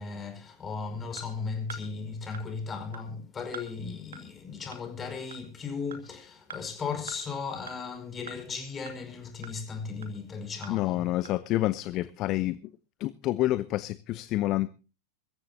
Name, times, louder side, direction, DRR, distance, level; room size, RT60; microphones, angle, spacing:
voice 1, 0.0-11.1, left 5 dB, 20° left, 5.1 m, -36 dB
sound 1, 1.2-1.3 1.7-1.8 2.3-2.4 2.9-3.0 3.5-3.7 4.1-4.2 4.7-4.8 5.3-5.4 5.9-6.0 6.5-6.6 7.1-7.2 7.7-7.8 8.3-8.4 8.9-9.0 9.4-9.5 10.0-10.1 10.6-10.7 11.2-11.3, right 3 dB, 65° right, 2.2 m, -42 dB
voice 2, 10.7-12.6 13.0-14.7, left 16 dB, 35° left, 0.7 m, -28 dB
23.5 x 14.5 x 2.8 m
figure-of-eight pair, 90°, 0 cm